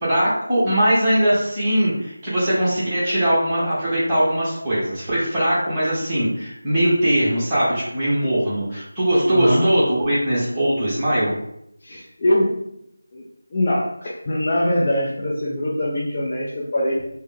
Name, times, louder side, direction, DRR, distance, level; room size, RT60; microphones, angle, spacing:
voice 1, 0.0-11.3, right 1 dB, 15° right, -10 dB, 1.3 m, -20 dB
voice 2, 9.3-9.7 11.8-12.6 13.1-13.2 13.5-17.0, left 1 dB, 30° left, -6 dB, 0.6 m, -22 dB
3.3 x 2.1 x 3.3 m, 0.76 s
figure-of-eight pair, 165°, 0 cm